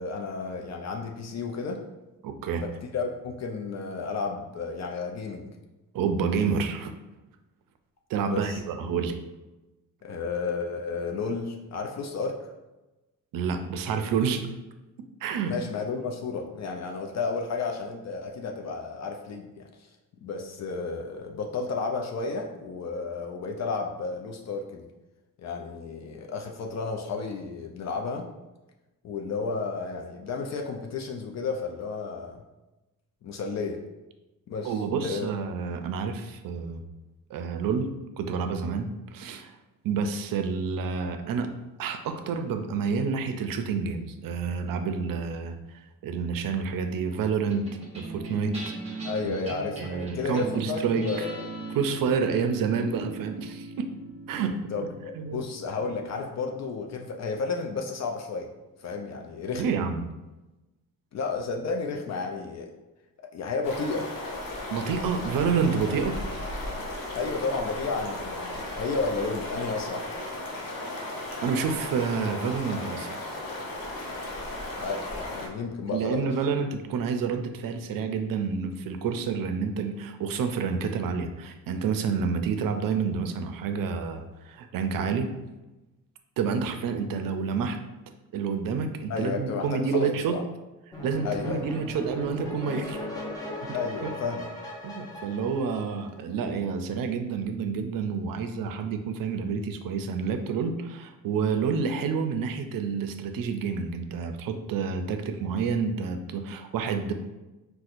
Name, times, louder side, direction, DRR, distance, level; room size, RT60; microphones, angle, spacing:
voice 1, 0.0-1.8 2.9-5.5 8.2-8.6 10.0-12.5 15.5-19.6 20.2-24.9 25.4-28.3 29.0-32.4 33.2-33.8 34.5-35.3 49.0-51.5 54.7-58.5 58.8-59.6 61.1-62.7 63.3-64.1 67.1-70.0 74.7-76.2 89.1-90.4 91.2-91.6 93.7-94.5, left 4 dB, 50° left, 2 dB, 0.4 m, -32 dB
voice 2, 2.2-2.6 5.9-6.9 8.1-9.2 13.3-14.5 15.2-15.5 34.6-36.8 37.3-37.9 38.2-39.5 39.8-41.5 41.8-45.6 46.0-47.7 48.0-49.4 49.8-51.3 51.8-53.9 54.3-54.9 55.2-55.4 59.5-60.1 64.7-66.2 71.2-73.1 75.9-85.3 86.4-87.8 88.3-90.4 91.0-93.0 93.7-93.8 94.0-94.1 94.8-107.1, right 5 dB, 70° right, 7 dB, 0.5 m, -29 dB
sound 1, 47.5-58.1, right 3 dB, 20° right, 0.9 m, -40 dB
sound 2, 63.6-75.5, left 1 dB, 80° left, 0.8 m, -35 dB
sound 3, 90.9-96.4, left 1 dB, 10° left, 0.7 m, -38 dB
4.1 x 2.2 x 2.5 m, 1.0 s
cardioid pair, 85°, 35 cm